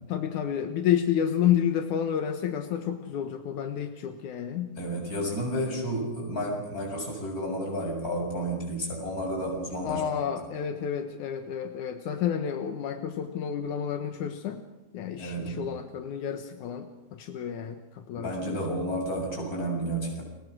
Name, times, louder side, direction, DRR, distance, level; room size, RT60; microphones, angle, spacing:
voice 1, 0.1-4.7 9.8-14.6 14.9-18.6, left 9 dB, 80° left, 6 dB, 2.7 m, -30 dB
voice 2, 4.8-10.3 15.2-15.7 18.2-20.2, right 1 dB, 25° left, -1 dB, 7.8 m, -31 dB
30.0 x 23.5 x 6.3 m, 1.0 s
omnidirectional pair, 3.4 m